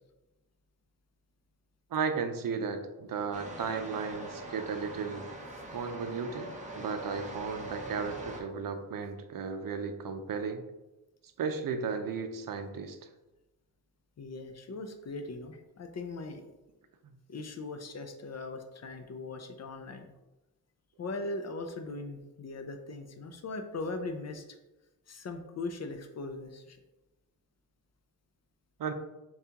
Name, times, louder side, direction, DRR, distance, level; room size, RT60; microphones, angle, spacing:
voice 1, 1.9-5.3 5.7-10.6 11.4-13.0 28.8-28.9, right 5 dB, 65° right, 7 dB, 0.5 m, -35 dB
sound 1, 3.3-8.4, right 1 dB, 20° right, 0.6 m, -42 dB
voice 2, 14.2-16.4 17.3-20.1 21.0-24.4 25.1-26.8, left 3 dB, 45° left, 7 dB, 0.4 m, -39 dB
7.0 x 2.4 x 2.8 m, 1.0 s
wide cardioid pair, 175°, 37 cm